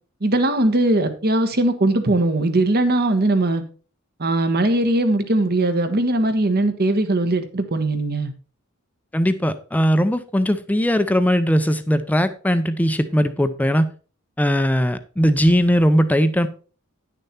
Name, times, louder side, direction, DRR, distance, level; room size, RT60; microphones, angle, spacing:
voice 1, 0.2-3.6 4.2-8.3, right 2 dB, 50° right, 1.2 m, -20 dB
voice 2, 9.1-13.9 14.4-16.5, equal, 10° left, 0.5 m, -19 dB
10.5 x 6.6 x 4.3 m
head